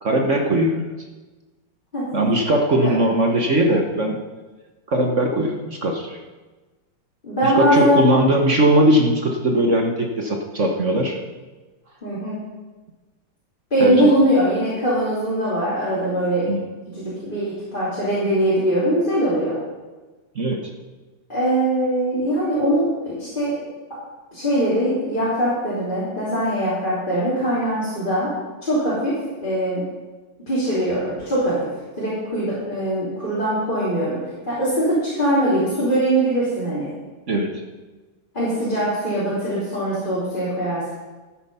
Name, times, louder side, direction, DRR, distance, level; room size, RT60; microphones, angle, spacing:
voice 1, 0.0-0.9 2.1-4.2 4.9-6.2 7.4-11.2 13.8-14.1 16.5-16.6 20.3-20.7 37.3-37.5, right 1 dB, 45° right, 2 dB, 1.1 m, -19 dB
voice 2, 7.2-8.0 12.0-12.4 13.7-16.5 16.9-19.6 21.3-23.7 24.3-28.3 28.6-29.2 29.4-29.8 30.5-31.6 32.0-34.2 34.5-36.9 38.3-40.9, right 1 dB, 20° left, -11 dB, 3.6 m, -21 dB
13.5 x 9.0 x 5.6 m, 1.2 s
omnidirectional pair, 2.4 m